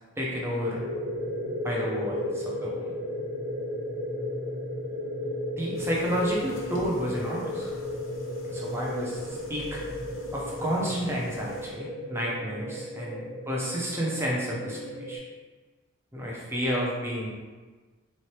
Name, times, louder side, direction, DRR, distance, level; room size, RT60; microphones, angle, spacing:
voice 1, 0.2-0.8 1.6-2.9 5.6-7.7 8.4-9.8 10.3-15.2 16.1-17.3, equal, 10° right, -4 dB, 0.7 m, -31 dB
sound 1, 0.7-15.2, left 1 dB, 90° right, 1.1 m, -34 dB
sound 2, 5.7-11.7, left 1 dB, 65° left, 0.7 m, -46 dB
4.2 x 3.2 x 2.8 m, 1.3 s
head